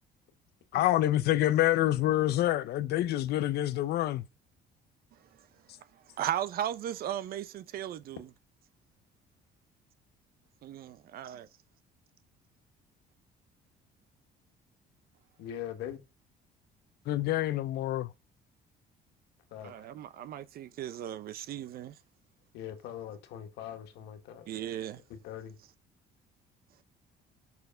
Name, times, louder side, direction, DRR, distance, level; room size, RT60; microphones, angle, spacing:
voice 1, 0.7-4.2 17.1-18.1, left 14 dB, 70° left, 0.7 m, -27 dB
voice 2, 6.2-8.2 10.6-11.5 19.6-21.9 24.5-25.0, right 11 dB, 65° right, 0.8 m, -36 dB
voice 3, 15.4-16.0 19.5-19.9 22.5-24.5 25.1-25.6, left 10 dB, 85° left, 1.6 m, -42 dB
6.1 x 5.7 x 5.0 m
cardioid pair, 110°, 17 cm